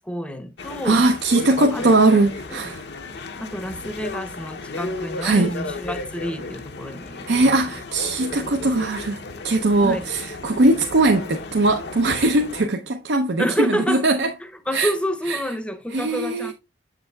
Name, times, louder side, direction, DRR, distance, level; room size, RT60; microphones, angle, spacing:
voice 1, 0.0-1.0 1.7-1.8 2.5-2.7 3.4-7.5 9.8-10.0 13.4-16.5, equal, 5° left, 0.7 m, -29 dB
sound 1, 0.6-12.7, left 3 dB, 65° left, 0.7 m, -34 dB
voice 2, 0.8-2.8 5.2-5.5 7.3-14.3 14.7-14.9 15.3-15.4 15.9-16.5, right 2 dB, 70° right, 0.6 m, -20 dB
7.6 x 6.6 x 2.2 m
head